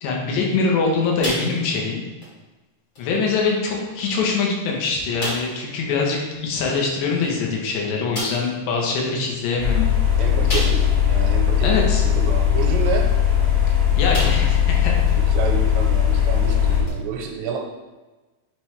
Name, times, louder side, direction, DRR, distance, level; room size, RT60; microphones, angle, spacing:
voice 1, 0.0-2.0 3.0-9.9 10.2-10.3 11.6-12.0 14.0-15.0, left 4 dB, 85° left, -1 dB, 3.2 m, -23 dB
sound 1, 1.2-1.9 2.2-2.4 2.9-3.1 3.9-4.0 4.4-4.5 5.2-5.6 7.3-7.4 8.1-8.5 10.5-11.1 11.6-11.7 13.5-13.7 14.1-14.6 15.1-15.2 16.8-16.9, equal, 45° left, 1.3 m, -29 dB
sound 2, 9.6-16.8, left 9 dB, 65° left, 3.6 m, -19 dB
voice 2, 10.2-11.7 12.2-13.1 15.3-17.6, right 7 dB, 90° right, 1 dB, 2.8 m, -29 dB
9.4 x 3.2 x 3.2 m, 1.2 s
omnidirectional pair, 4.9 m